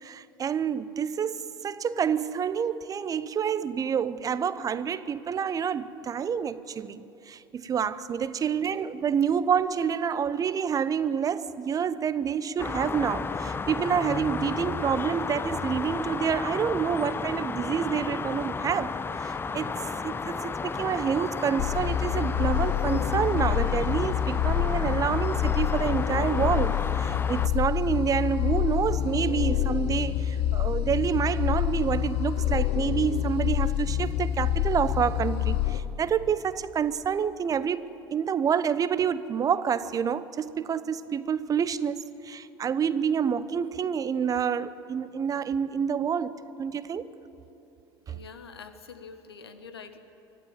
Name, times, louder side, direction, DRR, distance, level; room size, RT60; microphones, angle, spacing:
voice 1, 0.0-1.4 1.6-19.7 20.0-47.1 48.1-48.2, right 7 dB, 25° right, 0.9 m, -28 dB
voice 2, 8.3-8.7 48.1-50.0, left 5 dB, 75° left, 1.3 m, -46 dB
sound 1, 12.6-27.5, left 4 dB, 15° left, 0.7 m, -33 dB
sound 2, 21.6-35.8, left 11 dB, 50° left, 1.0 m, -27 dB
24.5 x 15.0 x 9.2 m
figure-of-eight pair, 70°, 13 cm